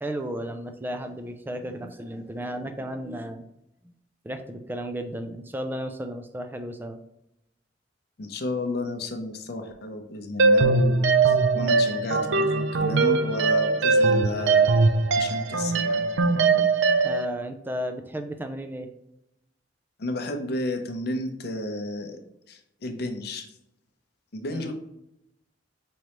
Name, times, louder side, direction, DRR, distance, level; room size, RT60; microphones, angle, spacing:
voice 1, 0.0-3.5 4.2-7.0 17.0-18.9 24.5-24.7, equal, 10° right, 7 dB, 0.4 m, -34 dB
voice 2, 8.2-14.7 15.2-16.7 20.0-22.2 22.5-23.5 24.3-24.7, left 2 dB, 60° left, 5 dB, 0.7 m, -32 dB
sound 1, 10.4-17.3, right 4 dB, 80° right, 0.4 m, -21 dB
5.2 x 3.1 x 3.0 m, 0.84 s
head